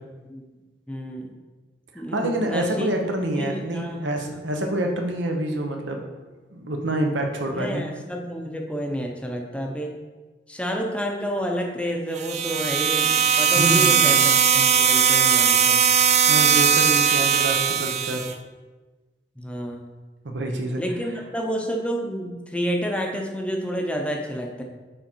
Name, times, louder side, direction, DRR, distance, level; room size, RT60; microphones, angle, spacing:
voice 1, 0.9-1.3 1.9-2.9 3.4-4.1 7.5-9.9 10.5-15.8 19.4-19.8 20.8-24.6, equal, 5° left, 2 dB, 0.6 m, -29 dB
voice 2, 2.1-6.1 6.5-7.8 13.6-14.2 16.3-18.3 20.2-20.8, right 1 dB, 85° right, 3 dB, 0.9 m, -27 dB
sound 1, 12.2-18.3, right 7 dB, 40° right, 0.4 m, -19 dB
6.6 x 3.7 x 4.4 m, 1.2 s
head